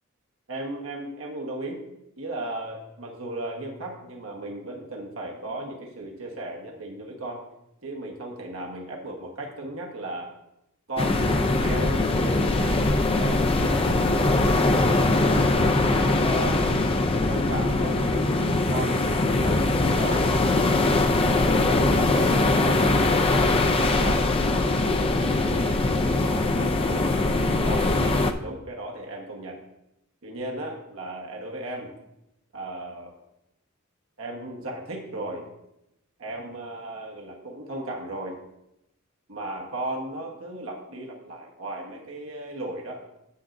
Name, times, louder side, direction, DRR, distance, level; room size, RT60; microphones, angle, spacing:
voice 1, 0.5-1.8 2.2-7.4 7.8-10.3 10.9-15.2 15.5-16.7 17.1-21.1 21.4-24.3 24.8-27.9 28.4-29.6 30.2-31.9 32.5-33.1 34.2-35.5 36.2-38.4 39.3-43.0, right 1 dB, 70° right, 0 dB, 1.3 m, -36 dB
sound 1, 11.0-28.3, left 2 dB, 25° left, 0.5 m, -22 dB
9.6 x 8.2 x 2.6 m, 0.87 s
head